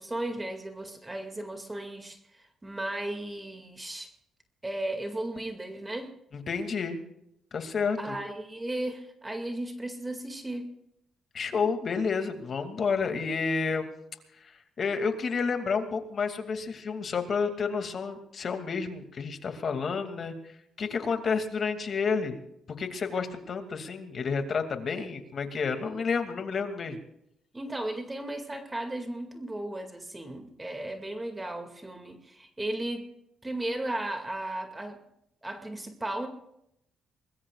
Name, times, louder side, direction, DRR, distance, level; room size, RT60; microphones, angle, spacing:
voice 1, 0.0-4.1 4.6-6.1 8.0-10.7 27.5-33.1 33.4-35.0 35.4-36.3, right 1 dB, 15° right, 5 dB, 2.2 m, -35 dB
voice 2, 6.3-7.0 7.5-8.2 11.3-13.9 14.4-20.3 20.8-22.4 22.8-27.0, left 5 dB, 50° left, 6 dB, 2.5 m, -30 dB
23.5 x 21.0 x 2.4 m, 0.78 s
cardioid pair, 90°, 0 cm